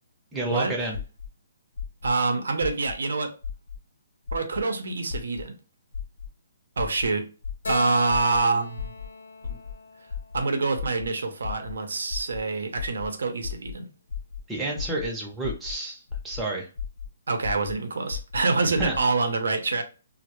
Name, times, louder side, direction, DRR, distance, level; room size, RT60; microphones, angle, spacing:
voice 1, 0.3-1.0 14.5-16.7 18.8-19.0, right 2 dB, 10° right, 0.6 m, -30 dB
sound 1, 0.9-1.3 1.8-2.1 2.6-2.9 3.4-3.8 4.3-4.6 5.1-5.4 5.9-6.3 6.8-7.1 7.4-7.7 8.1-8.4 8.8-9.1 9.4-9.7 10.1-10.4 10.8-11.1 11.4-11.7 12.1-12.4 12.8-13.1 13.4-13.7 14.1-14.4 14.8-15.1 15.4-15.7 16.1-16.4 16.8-17.1 17.4-17.7 18.1-18.4 18.8-19.0, left 7 dB, 65° left, 0.3 m, -34 dB
voice 2, 2.0-3.3 4.3-5.6 6.8-7.3 7.7-8.9 10.3-13.9 17.3-19.8, right 3 dB, 80° right, 0.5 m, -26 dB
Keyboard (musical), 7.6-11.1, left 3 dB, 85° left, 0.7 m, -38 dB
2.1 x 2.0 x 2.9 m
hypercardioid pair, 150°, 0 cm